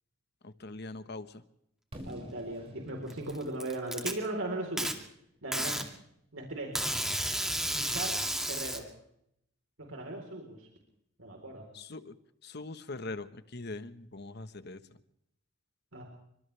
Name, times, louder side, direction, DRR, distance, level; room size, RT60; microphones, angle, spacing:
voice 1, 0.4-1.4 11.7-12.1 12.4-14.8, left 2 dB, 55° left, 11 dB, 1.3 m, -42 dB
Fireworks, 1.9-5.8, equal, 30° right, 6.2 m, -50 dB
voice 2, 2.0-4.9 5.4-5.8 6.3-6.7 7.7-8.1 8.5-8.9 9.8-10.7 11.2-11.6 15.9-16.0, right 2 dB, 80° right, 1 dB, 4.2 m, -38 dB
Packing tape duct tape, 3.1-4.1 4.8-4.9 5.5-5.9 6.7-8.8, right 1 dB, ahead, 2.4 m, -32 dB
29.5 x 25.5 x 3.5 m, 0.75 s
head